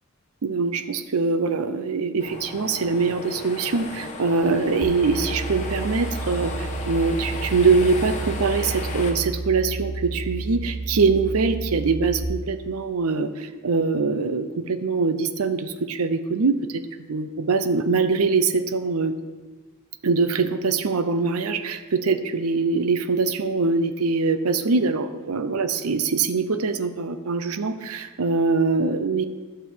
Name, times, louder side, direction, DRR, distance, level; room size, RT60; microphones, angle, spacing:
voice 1, 0.4-16.8 17.1-19.1 20.0-29.2, right 4 dB, 75° right, 10 dB, 0.6 m, -23 dB
sound 1, 2.2-9.1, left 2 dB, 30° left, 1.2 m, -35 dB
sound 2, 4.8-12.2, right 3 dB, 90° left, 1.2 m, -31 dB
12.0 x 6.2 x 4.6 m, 1.4 s
head